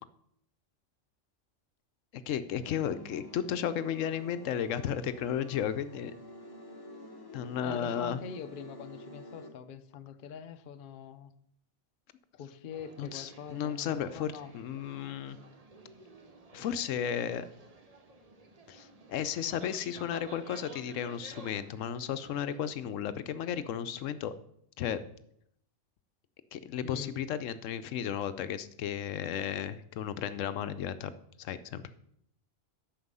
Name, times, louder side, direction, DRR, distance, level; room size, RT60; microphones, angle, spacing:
voice 1, 2.3-6.1 7.3-8.2 13.0-15.4 16.5-17.5 18.7-24.3 24.8-25.0 26.5-31.1 31.4-31.9, left 9 dB, 85° left, 13 dB, 1.0 m, -34 dB
sound 1, 2.6-9.5, left 2 dB, 20° left, 1.1 m, -49 dB
voice 2, 7.6-11.3 12.3-14.5 26.8-27.2, left 6 dB, 50° left, 10 dB, 0.7 m, -44 dB
sound 2, 12.7-22.6, right 3 dB, 30° right, 1.0 m, -53 dB
9.6 x 6.7 x 5.4 m, 0.71 s
omnidirectional pair, 1.3 m